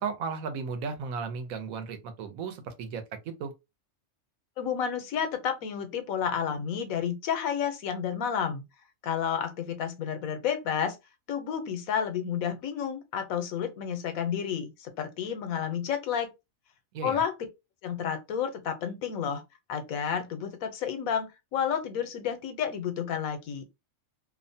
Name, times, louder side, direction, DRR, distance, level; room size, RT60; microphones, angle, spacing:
voice 1, 0.0-3.5 16.9-17.2, right 5 dB, 85° right, 1.1 m, -35 dB
voice 2, 4.6-8.6 9.0-11.0 11.3-16.3 17.0-17.3 17.8-19.4 19.7-23.6, left 8 dB, 85° left, 1.1 m, -31 dB
2.7 x 2.1 x 2.6 m
omnidirectional pair, 1.4 m